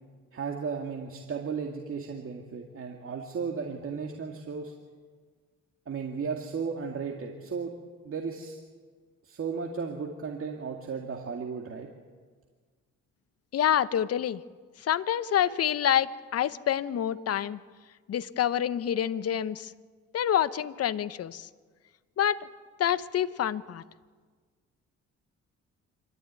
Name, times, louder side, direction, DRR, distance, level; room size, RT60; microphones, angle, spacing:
voice 1, 0.3-4.7 5.9-7.7 8.0-8.6 9.2-11.9, right 5 dB, 45° right, 2 dB, 2.2 m, -35 dB
voice 2, 13.5-14.4 14.8-17.6 18.1-19.7 20.1-21.5 22.2-22.4 22.8-23.8, left 10 dB, 55° left, 15 dB, 0.9 m, -27 dB
25.5 x 13.5 x 9.4 m, 1.5 s
cardioid pair, 90°, 30 cm